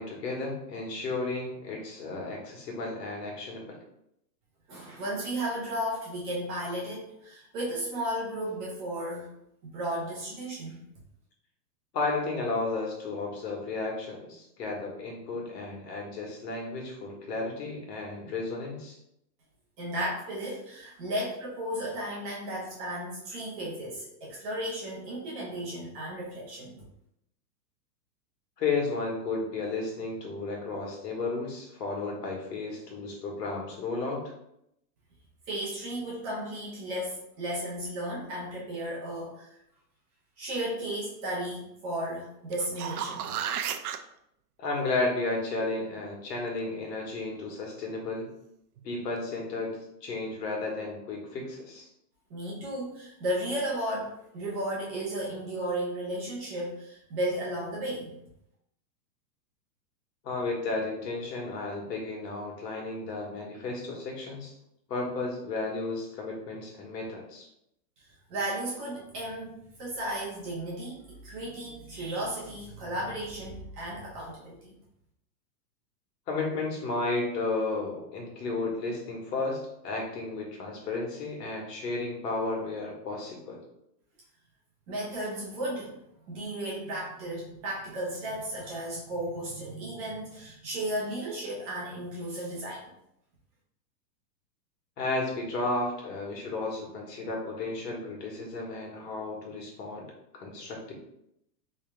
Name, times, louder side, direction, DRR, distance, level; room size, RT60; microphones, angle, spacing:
voice 1, 0.0-3.8 11.9-19.0 28.6-34.3 44.6-48.3 48.8-51.9 60.2-64.5 64.9-67.5 76.3-83.6 95.0-100.1 100.3-100.9, left 3 dB, 75° left, 0 dB, 1.5 m, -33 dB
voice 2, 4.7-9.3 9.6-10.8 19.8-26.8 35.5-39.6 40.4-43.3 52.3-58.1 68.3-74.7 84.9-85.9 86.3-92.9, right 1 dB, 20° right, -5 dB, 0.8 m, -34 dB
sound 1, 42.5-44.0 48.8-48.9, right 9 dB, 65° right, 0.5 m, -33 dB
3.5 x 3.3 x 3.4 m, 0.78 s
supercardioid pair, 170°, 50 cm